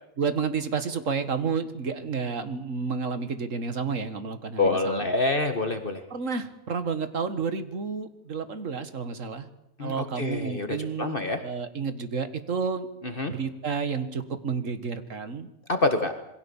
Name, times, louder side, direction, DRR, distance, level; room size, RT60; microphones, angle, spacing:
voice 1, 0.2-5.0 6.1-9.5 9.8-12.9 13.2-15.5, right 5 dB, 70° right, 11 dB, 2.0 m, -30 dB
voice 2, 4.6-6.1 9.8-11.4 13.0-13.3 15.7-16.2, left 2 dB, 40° left, 7 dB, 1.8 m, -26 dB
27.0 x 21.5 x 7.3 m, 0.83 s
omnidirectional pair, 1.4 m